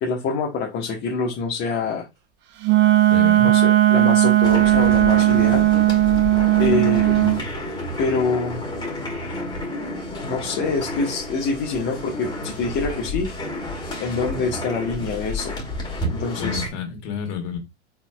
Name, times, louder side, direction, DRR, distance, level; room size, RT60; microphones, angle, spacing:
voice 1, 0.0-2.0 3.4-5.7 6.6-7.2 8.0-8.6 10.2-13.3 14.0-15.5 16.1-16.6, left 4 dB, 35° left, 1.3 m, -25 dB
Wind instrument woodwind instrument, 2.6-7.4, right 14 dB, 30° right, 0.8 m, -16 dB
voice 2, 3.1-3.5 7.1-7.5 16.4-17.6, left 6 dB, 50° left, 1.9 m, -30 dB
sound 1, 4.4-16.7, left 1 dB, 10° left, 2.1 m, -31 dB
4.7 x 4.0 x 2.3 m
hypercardioid pair, 105°, 35 cm